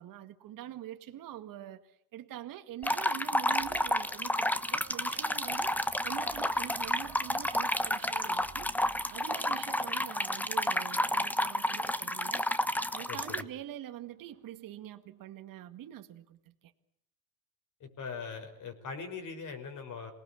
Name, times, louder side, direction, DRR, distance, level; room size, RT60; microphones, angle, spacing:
voice 1, 0.0-8.7 9.1-12.5 12.9-16.7, right 12 dB, 55° right, 1.9 m, -45 dB
sound 1, 2.8-13.4, left 1 dB, 5° left, 1.1 m, -31 dB
sound 2, 3.6-13.0 13.5-13.8 14.1-14.6, right 7 dB, 35° right, 3.2 m, -54 dB
voice 2, 13.1-13.5 17.8-20.1, left 5 dB, 50° left, 5.6 m, -41 dB
27.0 x 19.5 x 8.6 m
supercardioid pair, 95°, 39 cm